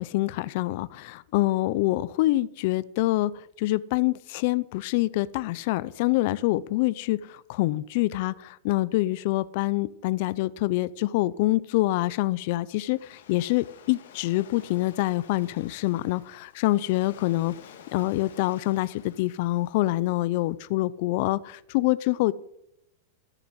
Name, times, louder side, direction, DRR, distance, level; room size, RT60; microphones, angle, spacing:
voice 1, 0.0-17.5 17.9-22.3, left 18 dB, 55° left, 18 dB, 0.5 m, -26 dB
Waves surf, 12.2-20.4, left 8 dB, 80° left, 2.0 m, -52 dB
13.0 x 6.9 x 7.8 m, 0.80 s
supercardioid pair, 150°, 0 cm